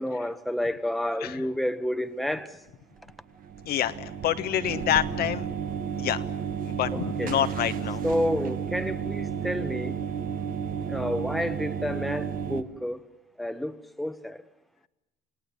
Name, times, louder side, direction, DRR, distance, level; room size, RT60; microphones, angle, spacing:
voice 1, 0.0-2.6 6.9-7.3 8.0-10.0 10.9-13.0 13.4-14.4, left 1 dB, ahead, 1.2 m, -30 dB
sound 1, 3.0-12.6, right 7 dB, 55° right, 1.5 m, -32 dB
voice 2, 3.6-5.5 6.0-6.2 6.7-8.0, left 11 dB, 65° left, 1.3 m, -27 dB
29.0 x 18.0 x 9.8 m
cardioid pair, 110°, 17 cm